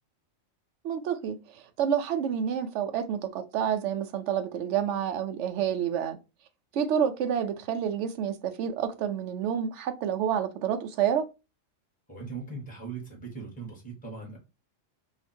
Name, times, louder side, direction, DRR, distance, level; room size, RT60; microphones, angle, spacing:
voice 1, 0.8-6.2 6.7-11.2, right 8 dB, 70° right, 0.9 m, -29 dB
voice 2, 12.1-14.4, right 4 dB, 5° left, 1.4 m, -39 dB
2.9 x 2.5 x 4.2 m
omnidirectional pair, 1.4 m